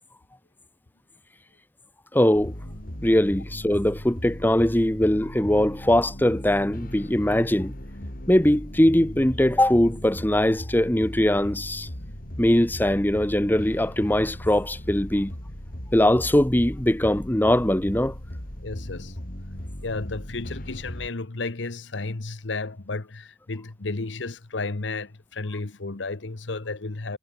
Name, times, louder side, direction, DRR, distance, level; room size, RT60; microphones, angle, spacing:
voice 1, 2.1-2.5 3.0-7.7 8.3-11.9 12.4-15.3 15.9-18.1, left 1 dB, 10° left, 0.9 m, -21 dB
sound 1, 2.3-21.1, equal, 50° left, 3.9 m, -37 dB
voice 2, 18.6-19.2 19.8-27.2, left 3 dB, 70° left, 1.1 m, -33 dB
head